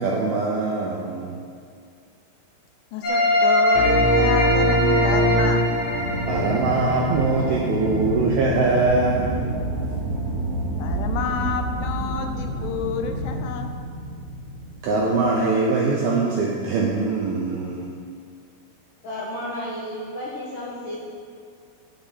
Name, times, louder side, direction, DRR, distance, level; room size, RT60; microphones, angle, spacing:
voice 1, 0.0-1.4 6.3-9.6 14.8-17.9, right 3 dB, 75° right, -3 dB, 2.3 m, -22 dB
voice 2, 2.9-5.7 10.8-13.7, left 6 dB, 80° left, 6 dB, 3.1 m, -29 dB
sound 1, 3.0-7.8, equal, 40° left, 4.1 m, -20 dB
sound 2, 5.7-11.6, right 4 dB, 55° right, 4.8 m, -34 dB
Aircraft, 6.0-15.4, right 1 dB, 10° left, 1.2 m, -29 dB
voice 3, 19.0-21.0, left 1 dB, 65° left, -5 dB, 2.1 m, -32 dB
10.0 x 7.4 x 7.6 m, 2.2 s
omnidirectional pair, 5.7 m